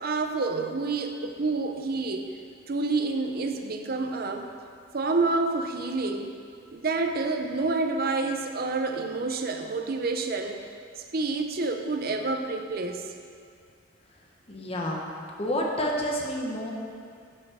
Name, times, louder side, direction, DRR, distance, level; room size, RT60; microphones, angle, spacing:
voice 1, 0.0-2.2 2.7-4.5 4.9-6.3 6.7-10.6 11.1-13.1, right 3 dB, 50° right, 5 dB, 0.6 m, -28 dB
voice 2, 14.5-15.1 15.4-16.7, equal, 30° left, -1 dB, 1.0 m, -29 dB
9.4 x 5.5 x 6.3 m, 2.2 s
head